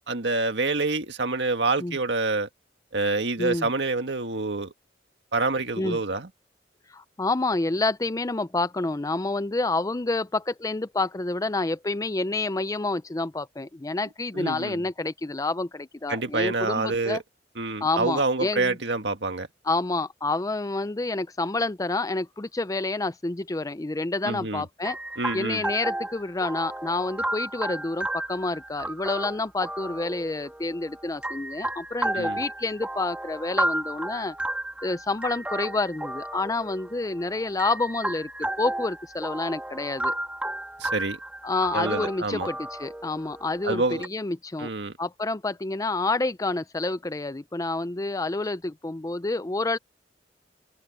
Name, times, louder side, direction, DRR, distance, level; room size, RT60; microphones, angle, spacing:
voice 1, 0.1-2.5 2.9-4.7 5.3-6.3 14.3-14.8 16.1-17.2 17.6-19.5 24.3-24.6 25.2-25.6 32.1-32.4 40.8-41.2 41.7-42.5 43.6-44.0 44.6-45.0, right 3 dB, 75° right, 1.8 m, -27 dB
voice 2, 3.4-3.7 5.8-6.0 6.9-17.2 17.8-18.8 19.6-25.0 25.3-34.3 34.8-38.3 38.6-40.1 41.4-44.7 45.0-49.8, left 2 dB, 20° left, 0.5 m, -28 dB
sound 1, 24.8-44.1, right 1 dB, 10° right, 2.2 m, -33 dB
head